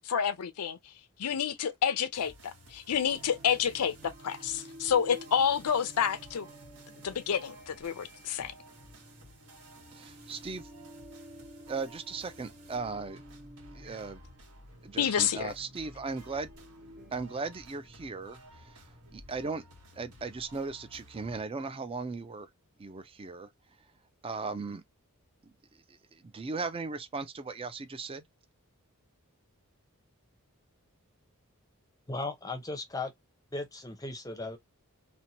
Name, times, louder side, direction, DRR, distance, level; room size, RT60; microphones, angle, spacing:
voice 1, 0.0-0.8 1.2-6.5 7.0-8.5 15.0-15.5, left 8 dB, 85° left, 0.5 m, -29 dB
sound 1, 2.1-21.4, right 1 dB, 80° right, 1.2 m, -54 dB
sound 2, 3.0-18.2, right 1 dB, 45° right, 1.1 m, -53 dB
voice 2, 9.9-10.6 11.7-13.2 13.7-14.2 14.8-16.5 17.1-18.8 19.1-19.6 19.9-22.5 22.8-23.5 24.2-24.8 26.2-28.2, right 4 dB, 25° right, 0.4 m, -37 dB
voice 3, 32.1-33.1 33.5-34.6, left 2 dB, 15° left, 0.6 m, -36 dB
2.8 x 2.2 x 2.7 m
head